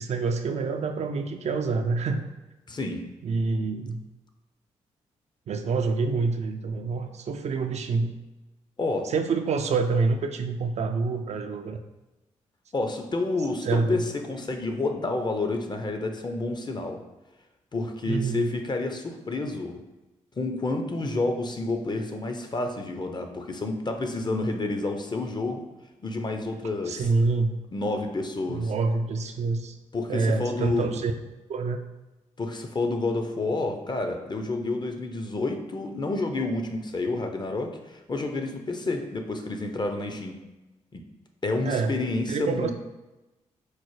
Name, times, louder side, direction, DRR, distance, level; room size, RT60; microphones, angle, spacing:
voice 1, 0.0-2.2 3.2-4.0 5.5-8.1 9.0-11.8 13.6-14.0 18.0-18.5 26.9-27.5 28.5-29.8 30.1-31.1 31.5-31.8 41.6-42.7, right 4 dB, 55° right, 6 dB, 0.4 m, -27 dB
voice 2, 2.7-3.0 8.8-9.1 12.7-17.0 17.7-19.8 20.4-25.6 26.0-27.1 27.7-28.7 29.9-30.9 32.4-40.4 40.9-41.0 41.4-42.7, left 2 dB, 35° left, 5 dB, 0.5 m, -29 dB
4.5 x 2.0 x 3.1 m, 1.0 s
supercardioid pair, 45°, 14 cm